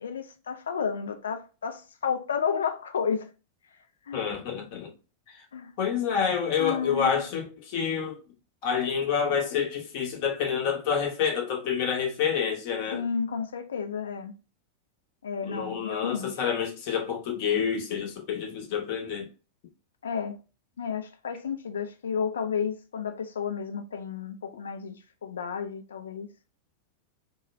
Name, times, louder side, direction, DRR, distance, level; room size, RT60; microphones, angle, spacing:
voice 1, 0.0-3.3 4.1-4.3 5.5-5.7 6.6-7.2 12.9-14.3 15.2-16.3 20.0-20.4 20.8-25.0 25.2-26.3, left 6 dB, 65° left, 0.3 m, -32 dB
voice 2, 4.1-4.9 5.3-5.4 5.8-8.2 8.6-13.0 15.4-19.3, left 7 dB, 45° left, 0.7 m, -28 dB
2.2 x 2.1 x 3.0 m
figure-of-eight pair, 90°, 0 cm